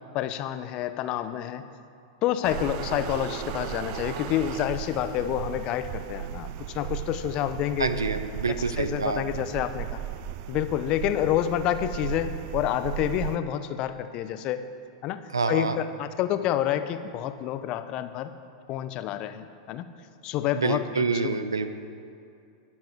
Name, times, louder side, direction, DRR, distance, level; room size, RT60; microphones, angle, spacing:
voice 1, 0.1-1.6 2.2-7.9 8.8-10.0 10.5-14.6 15.0-18.3 18.7-19.8 20.2-21.4, left 11 dB, 45° left, 11 dB, 0.8 m, -28 dB
sound 1, 2.4-13.4, right 11 dB, 50° right, 0.5 m, -36 dB
voice 2, 7.8-9.2 15.3-15.8 20.5-21.7, right 4 dB, 85° right, 10 dB, 0.8 m, -27 dB
21.5 x 7.6 x 4.7 m, 2.5 s
figure-of-eight pair, 95°, 2 cm